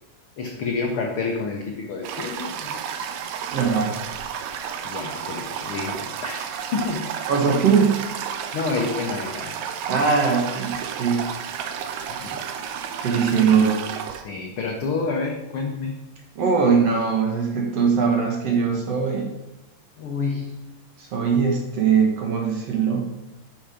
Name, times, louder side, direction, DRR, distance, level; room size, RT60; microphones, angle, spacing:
voice 1, 0.4-2.8 4.8-7.6 8.5-9.6 9.9-10.1 12.1-12.4 14.2-16.1 20.0-20.7, left 4 dB, 90° left, 1 dB, 1.2 m, -29 dB
Toilet flush, 2.0-14.2, right 8 dB, 80° right, 2.4 m, -32 dB
voice 2, 3.5-4.0 7.3-8.1 9.9-11.3 13.0-13.9 16.4-19.3 21.0-23.1, right 6 dB, 55° right, 0 dB, 2.3 m, -21 dB
9.1 x 6.5 x 5.0 m, 0.94 s
omnidirectional pair, 3.9 m